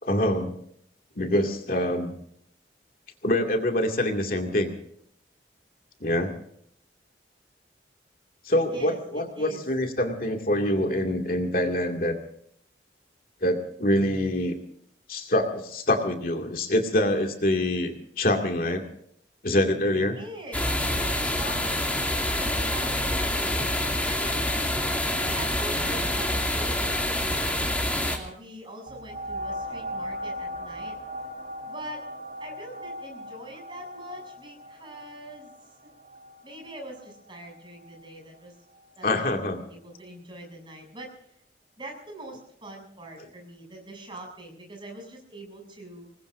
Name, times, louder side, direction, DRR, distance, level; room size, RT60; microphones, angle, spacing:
voice 1, 0.0-0.6 1.2-2.1 3.2-4.7 6.0-6.3 8.4-12.2 13.4-14.6 15.1-18.8 19.4-20.2 39.0-39.6, left 1 dB, 55° left, 3 dB, 2.3 m, -25 dB
voice 2, 8.5-9.7 20.1-24.4 25.1-27.7 28.0-30.9 31.7-32.1 32.4-35.7 36.4-38.5 39.0-41.1 41.8-46.1, right 1 dB, 30° right, 1 dB, 7.4 m, -43 dB
sound 1, 20.5-28.2, left 1 dB, 10° left, 2.6 m, -26 dB
sound 2, 28.9-38.1 38.8-38.9, equal, 50° right, 3.9 m, -38 dB
26.0 x 21.0 x 2.6 m, 0.65 s
head